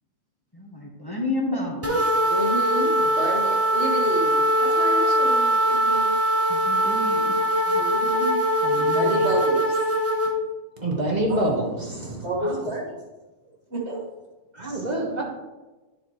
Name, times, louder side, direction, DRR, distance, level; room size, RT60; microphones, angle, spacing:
voice 1, 0.5-2.2 6.5-7.4 7.7-7.8 8.6-9.2, left 2 dB, 20° left, -2 dB, 1.2 m, -31 dB
sound 1, 1.8-10.3, equal, 15° right, 0.8 m, -21 dB
voice 2, 2.3-6.2 7.7-8.4 8.8-9.8 11.3-11.5 12.2-13.0 13.7-14.0, right 2 dB, 55° right, -3 dB, 1.9 m, -30 dB
voice 3, 10.8-12.7 14.5-15.2, right 1 dB, 35° right, -1 dB, 1.5 m, -26 dB
11.0 x 6.3 x 3.1 m, 1.2 s
omnidirectional pair, 1.4 m